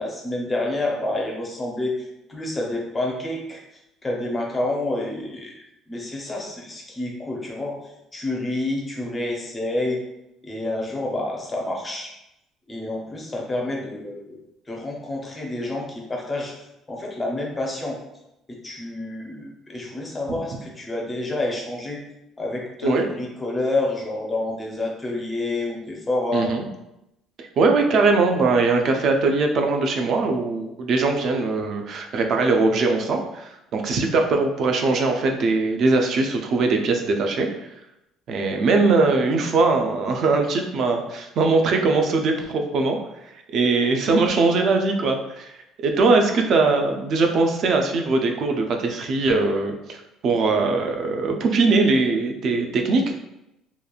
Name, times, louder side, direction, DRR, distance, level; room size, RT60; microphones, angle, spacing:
voice 1, 0.0-3.6 4.0-7.8 8.1-10.0 10.4-12.1 12.7-14.4 14.7-16.5 16.9-18.0 18.6-22.0 22.4-26.6, left 2 dB, 15° left, -1 dB, 0.5 m, -28 dB
voice 2, 26.3-26.7 27.6-37.5 38.3-43.0 43.5-45.5 45.8-53.1, right 3 dB, 40° right, 3 dB, 0.3 m, -21 dB
2.8 x 2.4 x 2.3 m, 0.86 s
cardioid pair, 170°, 0 cm